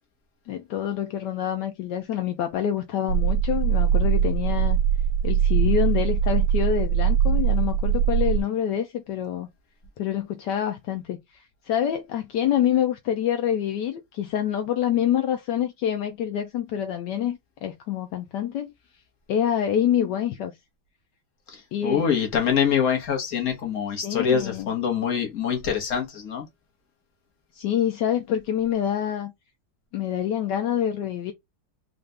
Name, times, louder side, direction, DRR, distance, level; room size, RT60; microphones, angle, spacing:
voice 1, 0.5-4.8 5.2-9.5 10.0-18.7 19.3-20.5 21.7-22.1 24.0-24.7 27.5-29.3 29.9-31.3, left 10 dB, 75° left, 1.2 m, -26 dB
sound 1, 3.1-8.4, right 8 dB, 85° right, 1.3 m, -22 dB
voice 2, 21.5-26.4, left 7 dB, 45° left, 1.5 m, -25 dB
4.0 x 2.5 x 3.3 m
omnidirectional pair, 2.0 m